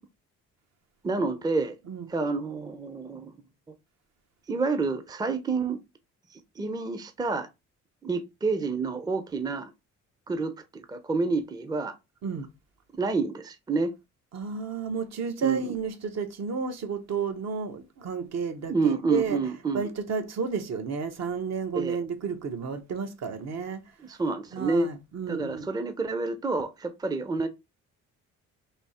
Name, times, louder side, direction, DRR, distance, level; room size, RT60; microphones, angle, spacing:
voice 1, 1.0-1.8 2.1-3.4 4.5-5.8 6.3-7.5 8.0-9.7 10.3-12.0 13.0-13.9 15.4-15.6 18.7-19.9 21.7-22.0 24.0-24.9 25.3-27.5, right 3 dB, 15° right, 0.5 m, -28 dB
voice 2, 14.3-19.4 19.7-23.8 24.5-25.7, right 5 dB, 60° right, 0.9 m, -32 dB
3.4 x 2.7 x 4.2 m
cardioid pair, 90°, 30 cm